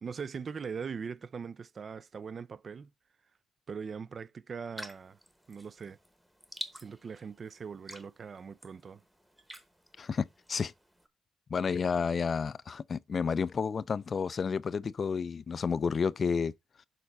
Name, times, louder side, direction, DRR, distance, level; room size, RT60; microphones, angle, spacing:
voice 1, 0.0-2.9 3.7-5.2 5.5-6.0 6.7-9.0, right 6 dB, 45° right, 0.4 m, -41 dB
sound 1, 4.8-11.1, equal, 5° right, 1.0 m, -49 dB
voice 2, 10.0-10.7 11.5-16.5, left 5 dB, 40° left, 0.4 m, -31 dB
6.7 x 4.2 x 4.0 m
cardioid pair, 90°, 0 cm